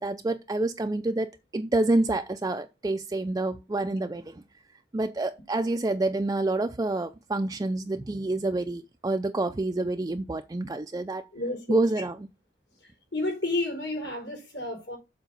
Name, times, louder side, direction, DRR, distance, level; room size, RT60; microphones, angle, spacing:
voice 1, 0.0-4.4 4.9-11.2 11.7-12.3, right 2 dB, 20° right, 0.4 m, -28 dB
voice 2, 11.3-11.8 12.8-15.0, left 2 dB, 70° left, 4.6 m, -31 dB
7.3 x 4.3 x 6.8 m
head